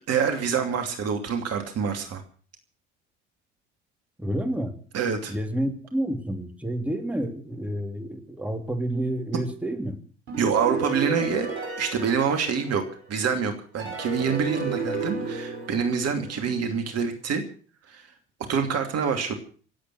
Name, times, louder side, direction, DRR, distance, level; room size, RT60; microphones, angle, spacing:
voice 1, 0.1-2.2 4.9-5.3 10.4-12.8 13.1-17.4 17.9-18.0 18.5-19.3, right 6 dB, 45° right, 5 dB, 2.8 m, -26 dB
voice 2, 4.2-4.8 5.3-10.0, right 1 dB, 5° right, 4 dB, 3.2 m, -29 dB
sound 1, 10.3-13.1 13.8-16.6, right 4 dB, 75° right, 6.0 m, -32 dB
26.0 x 8.7 x 6.3 m, 0.43 s
hypercardioid pair, 65°, 34 cm